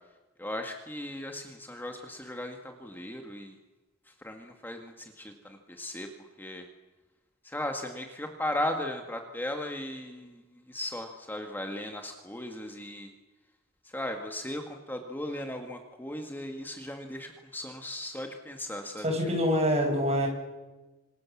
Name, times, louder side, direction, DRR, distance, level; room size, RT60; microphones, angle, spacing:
voice 1, 0.4-3.6 4.2-6.1 6.4-6.6 7.4-10.4 10.7-13.1 13.9-19.1, left 1 dB, 10° left, 4 dB, 1.8 m, -37 dB
voice 2, 19.0-20.3, equal, 35° right, 2 dB, 6.5 m, -25 dB
26.5 x 26.5 x 7.3 m, 1.2 s
head